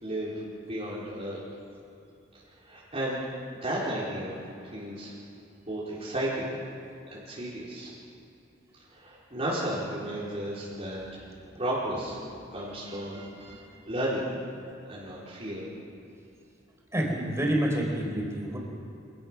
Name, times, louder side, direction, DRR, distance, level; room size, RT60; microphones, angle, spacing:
voice 1, 0.0-1.4 2.6-3.2 3.6-4.3 4.6-5.1 5.7-6.5 7.1-7.9 8.9-11.2 11.6-12.2 12.5-14.3 14.9-15.7, right 1 dB, 30° right, -7 dB, 4.1 m, -33 dB
voice 2, 16.9-18.6, equal, 15° right, -1 dB, 4.2 m, -29 dB
25.5 x 18.0 x 6.2 m, 2.7 s
head